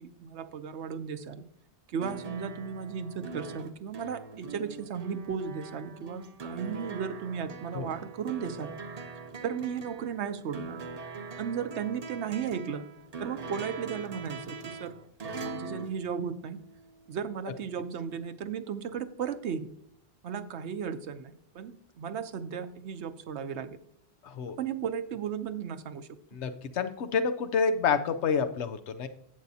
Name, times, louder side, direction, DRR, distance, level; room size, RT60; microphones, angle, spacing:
voice 1, 0.0-1.4 1.9-8.7 9.4-10.8 11.4-12.8 13.2-14.9 15.4-16.6 17.1-19.7 20.2-23.8 24.6-26.1, right 7 dB, 85° right, 10 dB, 1.0 m, -35 dB
sound 1, 2.0-16.9 18.2-18.3, right 3 dB, 40° right, 0.7 m, -42 dB
voice 2, 24.2-24.6 26.3-29.1, left 6 dB, 85° left, 10 dB, 1.0 m, -28 dB
11.0 x 8.2 x 2.7 m, 0.68 s
omnidirectional pair, 1.1 m